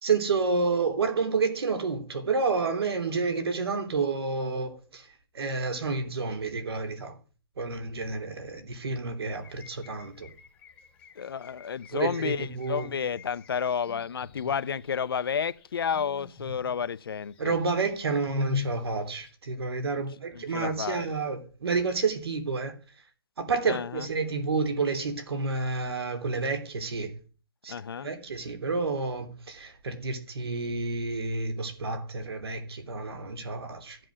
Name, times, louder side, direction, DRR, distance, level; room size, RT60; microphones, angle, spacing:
voice 1, 0.0-5.1 5.3-7.1 7.6-10.3 11.9-12.9 17.4-22.7 23.4-27.1 27.6-27.7 28.0-34.0, right 4 dB, 70° right, 3.3 m, -29 dB
sound 1, 9.3-19.3, left 5 dB, 10° left, 1.3 m, -43 dB
voice 2, 11.2-17.6 19.9-20.0 20.3-21.1 23.7-24.0 27.7-28.1, left 7 dB, 60° left, 0.7 m, -31 dB
14.5 x 7.7 x 6.3 m
hypercardioid pair, 170°, 13 cm